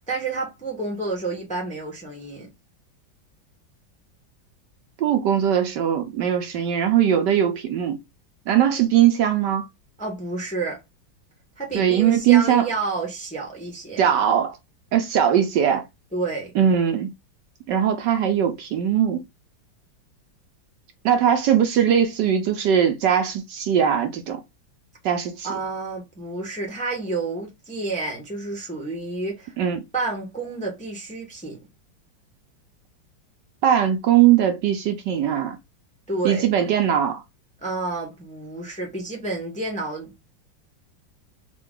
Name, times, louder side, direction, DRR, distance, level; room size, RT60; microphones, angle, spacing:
voice 1, 0.0-2.5 10.0-10.8 11.6-14.0 16.1-16.5 25.4-29.5 29.9-31.6 36.1-36.4 37.6-40.1, right 3 dB, 5° left, 0.8 m, -30 dB
voice 2, 5.0-8.0 8.5-9.6 11.7-12.6 14.0-14.6 14.9-15.8 16.6-17.1 17.7-19.2 21.0-24.4 25.0-25.5 29.6-29.8 33.6-35.6 36.2-37.2, right 9 dB, 70° right, 1.3 m, -20 dB
3.8 x 2.5 x 3.6 m
omnidirectional pair, 2.1 m